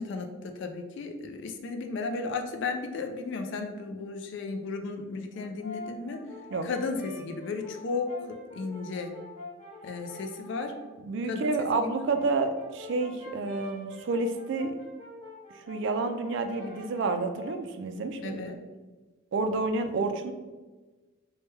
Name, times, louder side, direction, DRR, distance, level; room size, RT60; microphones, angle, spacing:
voice 1, 0.0-6.2 6.6-9.2 9.8-10.8 11.3-11.6 11.8-12.1 18.2-18.6, left 4 dB, 60° left, 4 dB, 0.3 m, -34 dB
Brass instrument, 5.3-10.9 11.8-17.7, left 2 dB, 35° left, 0.8 m, -45 dB
voice 2, 11.0-14.7 15.7-18.5 19.3-20.3, right 3 dB, 60° right, 8 dB, 0.3 m, -29 dB
3.1 x 2.2 x 3.2 m, 1.3 s
head